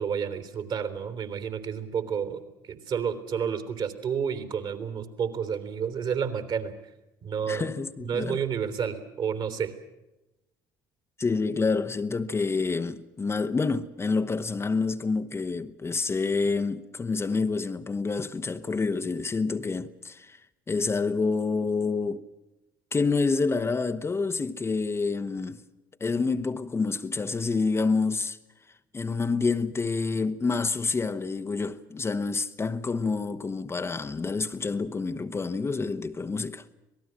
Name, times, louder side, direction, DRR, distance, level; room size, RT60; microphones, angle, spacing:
voice 1, 0.0-6.7 7.2-7.6 8.0-9.7, right 7 dB, 50° right, 3.4 m, -30 dB
voice 2, 7.5-8.4 11.2-20.4 20.7-22.2 22.9-25.6 26.0-28.4 28.9-36.6, left 4 dB, 25° left, 1.2 m, -28 dB
26.0 x 19.0 x 7.6 m
hypercardioid pair, 60°, 10 cm